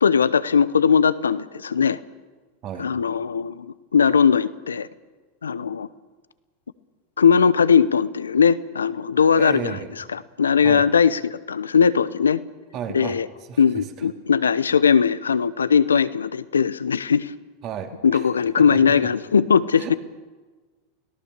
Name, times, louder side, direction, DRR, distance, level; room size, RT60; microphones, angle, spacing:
voice 1, 0.0-2.0 2.8-3.7 3.9-4.9 5.4-5.9 7.2-9.8 10.1-12.4 12.9-13.3 13.6-17.3 18.0-20.0, left 6 dB, 85° left, 16 dB, 0.9 m, -19 dB
voice 2, 9.4-9.9 10.6-10.9 12.7-13.2 13.5-13.6 17.6-18.2 18.6-18.8 19.8-20.0, right 8 dB, 45° right, 4 dB, 3.6 m, -33 dB
30.0 x 18.5 x 6.7 m, 1.3 s
hypercardioid pair, 95°, 0 cm